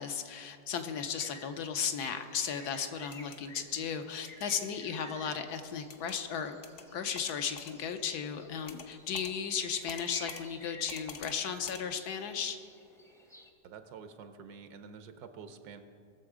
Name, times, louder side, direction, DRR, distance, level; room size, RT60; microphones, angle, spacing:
voice 1, 0.0-6.6 6.9-12.6, left 7 dB, 70° left, 7 dB, 1.2 m, -35 dB
sound 1, 0.9-13.5, left 1 dB, 5° left, 0.6 m, -53 dB
sound 2, 3.1-3.4 4.4-4.7 5.9-6.2 6.6-6.9 7.2-7.8 8.7-8.9 9.1-9.3 9.9-10.4 10.9-11.4 11.7-11.8, left 6 dB, 55° left, 0.9 m, -46 dB
voice 2, 13.6-15.8, right 6 dB, 70° right, 9 dB, 1.2 m, -48 dB
18.5 x 7.0 x 4.9 m, 2.4 s
omnidirectional pair, 1.8 m